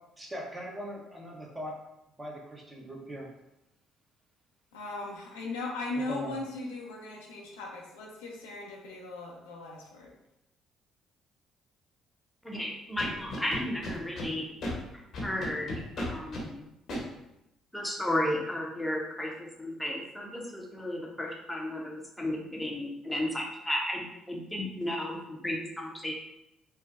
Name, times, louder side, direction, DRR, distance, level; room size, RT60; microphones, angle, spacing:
voice 1, 0.2-1.8 2.2-3.3 6.1-6.4, equal, 20° right, -2 dB, 0.9 m, -40 dB
voice 2, 4.7-10.1, left 2 dB, 80° left, -2 dB, 0.5 m, -38 dB
voice 3, 12.4-14.5 15.2-16.6 17.7-26.1, left 1 dB, 5° left, -1 dB, 0.8 m, -34 dB
Scratching (performance technique), 13.0-14.3 14.6-14.7 15.1-16.4 16.9-17.0, left 1 dB, 55° left, 0.8 m, -35 dB
3.2 x 2.1 x 2.5 m, 0.88 s
hypercardioid pair, 50°, 0 cm